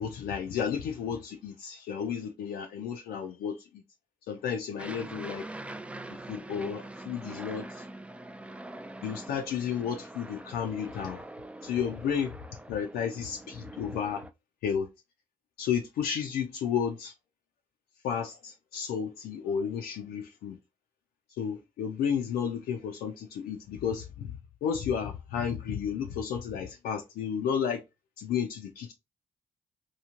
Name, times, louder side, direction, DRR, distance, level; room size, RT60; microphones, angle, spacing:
voice 1, 0.0-3.6 4.3-5.5 6.3-7.9 9.0-11.2 11.6-12.3 12.7-14.2 14.6-14.9 15.6-17.1 18.0-20.6 21.4-27.8 28.2-28.9, left 7 dB, 70° left, 0.4 m, -32 dB
Aircraft, 4.8-14.3, right 1 dB, 5° right, 0.3 m, -44 dB
3.0 x 2.3 x 2.4 m
hypercardioid pair, 40°, 17 cm